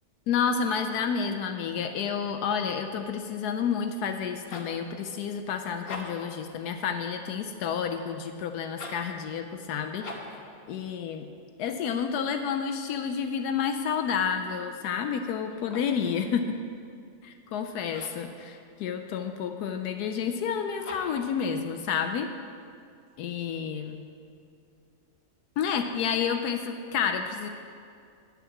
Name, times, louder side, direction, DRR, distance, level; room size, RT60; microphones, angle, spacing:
voice 1, 0.3-10.3 10.7-11.3 11.6-16.6 17.2-22.3 23.2-24.0 25.6-27.5, left 7 dB, 75° left, 6 dB, 1.1 m, -30 dB
sound 1, 4.5-4.8 5.7-6.3 8.7-9.1 10.0-10.4 15.5-16.0 17.9-18.3 20.8-21.3, left 3 dB, 40° left, 1.1 m, -41 dB
10.5 x 5.9 x 7.0 m, 2.4 s
omnidirectional pair, 1.7 m